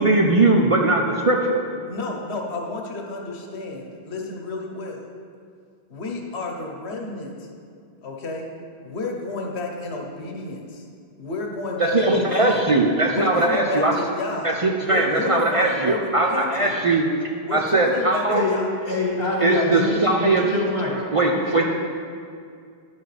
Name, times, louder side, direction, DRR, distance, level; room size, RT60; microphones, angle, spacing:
voice 1, 0.0-1.6 11.8-13.9 14.6-17.1 17.5-18.4 19.4-20.4 21.1-21.6, right 2 dB, 40° right, 0 dB, 0.5 m, -20 dB
voice 2, 1.8-5.1 5.9-7.5 8.0-8.5 8.8-10.8 11.2-12.7 13.1-14.5 14.8-16.8 17.4-18.7, left 3 dB, 85° left, 1 dB, 1.2 m, -31 dB
voice 3, 18.8-21.6, left 3 dB, 65° left, -3 dB, 2.0 m, -26 dB
11.0 x 7.1 x 3.3 m, 2.3 s
omnidirectional pair, 1.1 m